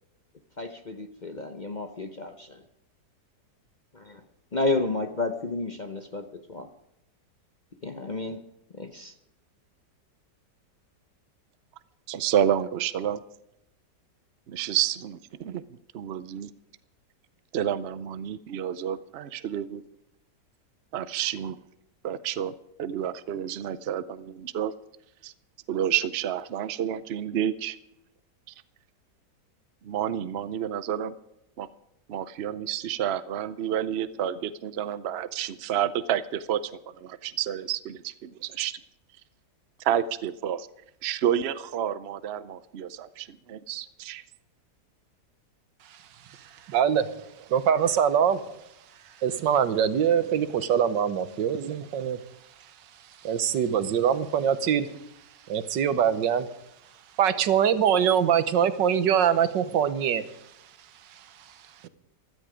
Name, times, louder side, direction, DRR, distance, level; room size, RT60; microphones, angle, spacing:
voice 1, 0.6-2.6 3.9-4.2 4.5-6.7 7.8-8.4 8.7-9.1, left 2 dB, 40° left, 0.7 m, -31 dB
voice 2, 12.1-13.2 14.5-15.6 15.9-16.5 17.5-19.8 20.9-21.6 22.0-22.5 22.8-24.7 25.2-25.3 25.7-27.8 29.8-31.1 31.6-31.7 32.1-36.6 37.0-38.8 39.8-40.7 41.0-44.2, right 10 dB, 70° right, 0.6 m, -29 dB
voice 3, 46.3-48.6 49.2-52.2 53.2-54.9 55.5-56.5 57.2-60.4 61.1-61.5 61.8-61.9, right 8 dB, 90° right, 1.6 m, -24 dB
16.0 x 13.0 x 5.0 m
omnidirectional pair, 1.9 m